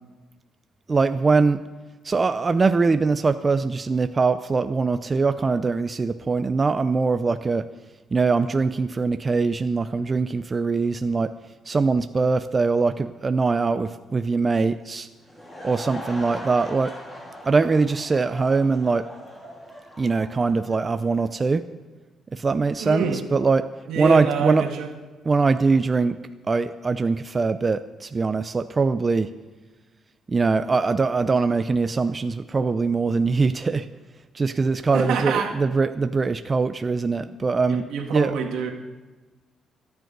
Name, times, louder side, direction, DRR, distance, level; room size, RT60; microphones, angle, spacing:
voice 1, 0.9-1.6 2.0-7.7 8.1-11.3 11.7-15.1 15.6-16.9 17.4-19.1 20.0-21.6 22.3-23.7 24.0-24.6 25.2-26.2 26.5-29.3 30.3-33.9 34.3-37.8 38.1-38.3, right 4 dB, 30° right, 10 dB, 0.5 m, -22 dB
Laughter / Crowd, 15.1-21.4, left 1 dB, 20° left, 4.2 m, -40 dB
voice 2, 22.8-23.2 23.9-24.9 34.9-35.5 37.7-38.7, right 6 dB, 85° right, 3 dB, 1.9 m, -26 dB
26.0 x 9.6 x 4.0 m, 1.3 s
cardioid pair, 90°, 0 cm